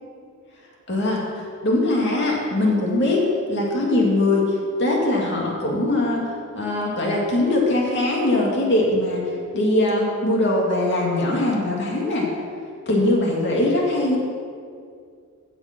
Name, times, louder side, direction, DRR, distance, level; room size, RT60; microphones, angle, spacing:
voice 1, 0.9-12.3 12.9-14.2, left 2 dB, 50° left, -2 dB, 2.5 m, -21 dB
16.0 x 6.0 x 6.1 m, 2.3 s
head